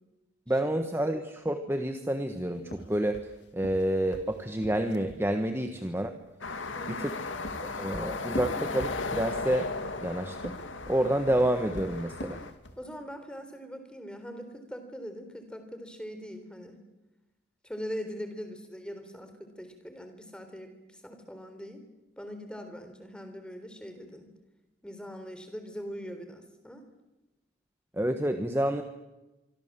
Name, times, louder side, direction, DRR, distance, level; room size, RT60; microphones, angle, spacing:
voice 1, 0.5-6.1 6.9-7.2 7.6-9.7 10.0-10.6 10.9-12.4 28.0-28.8, right 1 dB, 10° right, 7 dB, 1.3 m, -29 dB
sound 1, 2.6-5.3 7.0-9.4 10.3-12.9, equal, 65° left, 2.5 m, -42 dB
sound 2, 6.4-12.5, left 3 dB, 80° left, 2.2 m, -36 dB
voice 2, 6.7-7.1 12.8-16.7 17.6-21.9 22.2-24.3 24.8-26.9, equal, 5° left, 7 dB, 3.7 m, -41 dB
26.0 x 24.0 x 7.5 m, 1.0 s
head